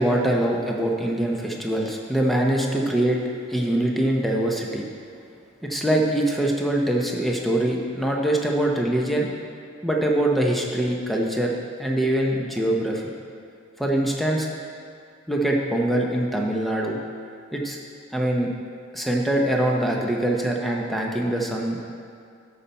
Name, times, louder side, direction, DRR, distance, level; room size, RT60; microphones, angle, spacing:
voice 1, 0.0-3.2 3.5-4.8 5.6-9.3 9.8-11.5 11.8-13.0 13.8-14.5 15.3-17.0 17.5-17.8 18.1-18.5 18.9-21.8, right 1 dB, ahead, -1 dB, 0.8 m, -23 dB
12.0 x 5.7 x 4.2 m, 2.3 s
head